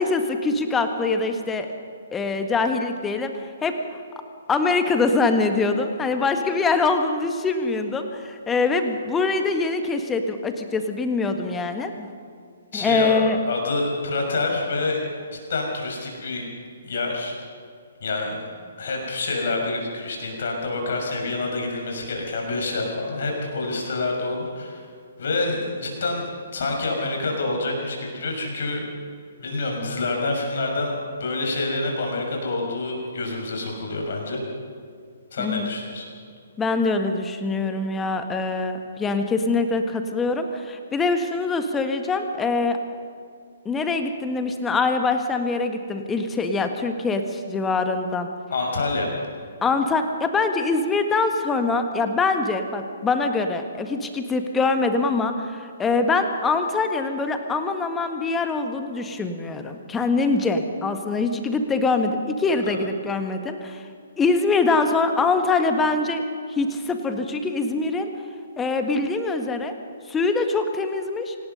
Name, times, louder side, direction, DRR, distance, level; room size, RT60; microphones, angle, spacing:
voice 1, 0.0-1.7 2.1-3.3 3.6-3.8 4.5-12.1 12.7-13.4 35.4-35.7 36.6-42.8 43.7-48.3 49.6-63.8 64.2-66.2 66.5-68.1 68.6-69.7 70.1-71.4, left 3 dB, 10° left, 6 dB, 1.6 m, -23 dB
voice 2, 12.7-15.0 15.3-16.4 16.8-17.3 18.0-18.4 18.8-24.9 25.2-26.3 26.5-28.8 29.4-30.9 31.2-34.4 35.3-36.1 48.5-49.2, left 3 dB, 50° left, 1 dB, 6.1 m, -27 dB
26.5 x 18.5 x 5.5 m, 2.3 s
figure-of-eight pair, 125°, 0 cm